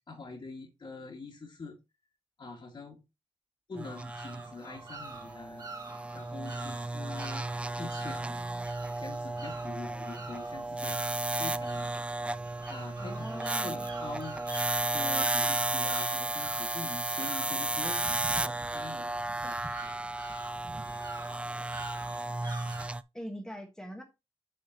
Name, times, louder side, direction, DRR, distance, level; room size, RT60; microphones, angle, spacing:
voice 1, 0.1-1.8 2.4-3.0 3.7-5.6 6.1-7.5 7.8-8.3 9.0-11.9 12.7-14.4 14.9-20.0, left 3 dB, 40° left, 2.0 m, -44 dB
sound 1, 3.8-23.0, right 2 dB, 10° right, 0.4 m, -34 dB
sound 2, 3.8-22.8, right 3 dB, 35° right, 1.9 m, -46 dB
voice 2, 13.0-13.9 23.1-24.0, equal, 5° left, 1.4 m, -44 dB
8.5 x 6.4 x 2.9 m
wide cardioid pair, 145°, 11 cm